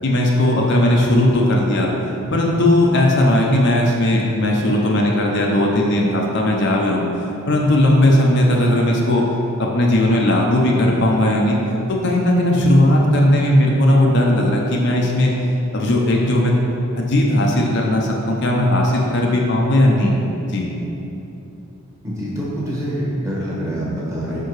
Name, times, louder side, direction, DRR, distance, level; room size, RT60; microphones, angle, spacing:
voice 1, 0.0-1.9 2.3-7.0 7.5-9.2 9.6-11.6 11.9-15.3 15.7-16.5 16.9-20.1 20.5-20.7, left 1 dB, 55° left, -1 dB, 0.6 m, -17 dB
voice 2, 22.0-24.4, equal, 15° right, -6 dB, 1.2 m, -25 dB
5.7 x 4.5 x 4.7 m, 3.0 s
head